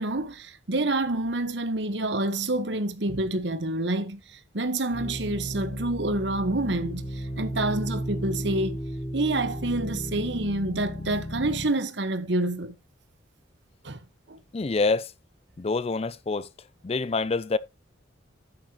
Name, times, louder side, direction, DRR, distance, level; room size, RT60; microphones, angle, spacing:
voice 1, 0.0-8.8 9.1-12.7 13.8-14.0 14.3-14.4, right 2 dB, 70° right, 1.3 m, -28 dB
sound 1, 4.9-11.7, equal, 60° left, 3.8 m, -34 dB
voice 2, 14.5-15.1 15.6-16.5 16.8-17.6, left 3 dB, 35° left, 0.4 m, -26 dB
11.0 x 8.8 x 3.0 m
head